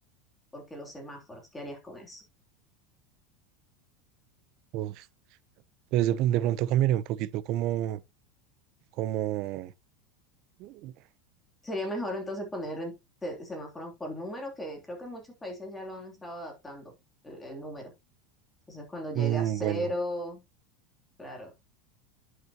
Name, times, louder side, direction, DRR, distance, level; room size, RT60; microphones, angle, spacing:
voice 1, 0.5-2.2 11.6-12.9 13.2-16.9 17.2-17.9 18.7-20.4 21.2-21.5, equal, 10° left, 3.2 m, -37 dB
voice 2, 4.7-5.1 5.9-8.0 9.0-9.7 10.6-10.9 19.1-19.9, right 12 dB, 50° right, 0.7 m, -28 dB
10.5 x 6.2 x 3.0 m
supercardioid pair, 125°, 0 cm